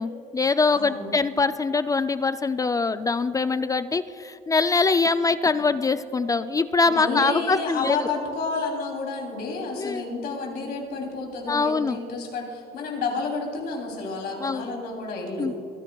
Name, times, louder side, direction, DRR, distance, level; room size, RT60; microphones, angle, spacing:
voice 1, 0.0-8.0 9.8-10.0 11.5-12.0 14.4-14.7 15.4-15.5, left 4 dB, 20° left, 12 dB, 0.3 m, -23 dB
voice 2, 0.7-1.1 5.6-5.7 6.9-15.5, left 3 dB, 70° left, 0 dB, 3.0 m, -30 dB
23.0 x 10.5 x 2.3 m, 2.8 s
cardioid pair, 110°, 17 cm